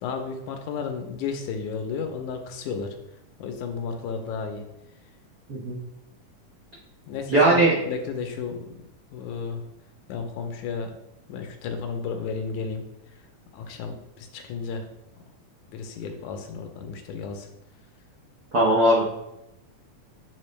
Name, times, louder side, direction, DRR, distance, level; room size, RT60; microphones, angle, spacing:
voice 1, 0.0-3.0 3.4-4.6 7.1-8.8 9.1-9.6 10.1-11.0 11.3-12.8 13.5-14.8 15.7-17.5, left 5 dB, 80° left, 5 dB, 2.1 m, -33 dB
voice 2, 7.3-7.8 18.5-19.0, right 1 dB, 70° right, -6 dB, 0.9 m, -19 dB
7.9 x 3.7 x 3.2 m, 0.88 s
omnidirectional pair, 3.5 m